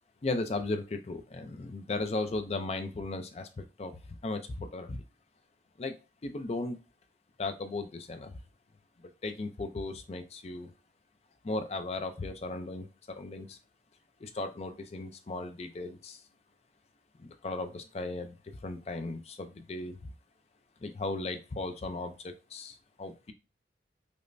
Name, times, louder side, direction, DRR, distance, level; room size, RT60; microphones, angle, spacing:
voice 1, 0.2-5.0 5.8-6.0 6.2-6.8 7.4-8.4 9.0-10.7 11.4-13.6 14.2-16.2 17.2-20.0 20.8-23.3, left 2 dB, 35° left, 8 dB, 0.4 m, -36 dB
5.1 x 2.1 x 2.5 m, 0.29 s
head